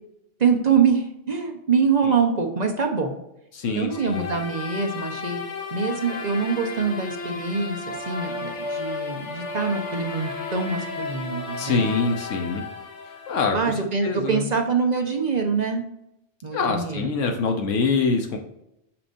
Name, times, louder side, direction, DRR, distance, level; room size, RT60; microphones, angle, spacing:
voice 1, 0.4-3.2 3.7-5.4 5.7-11.8 13.5-15.8 16.4-17.1, right 5 dB, 40° right, 3 dB, 0.9 m, -24 dB
voice 2, 3.5-4.3 11.6-12.6 13.3-14.5 16.5-18.4, left 4 dB, 90° left, 3 dB, 1.2 m, -25 dB
sound 1, 3.9-13.8, left 3 dB, 70° left, 1.4 m, -33 dB
6.3 x 5.9 x 2.6 m, 0.83 s
omnidirectional pair, 1.2 m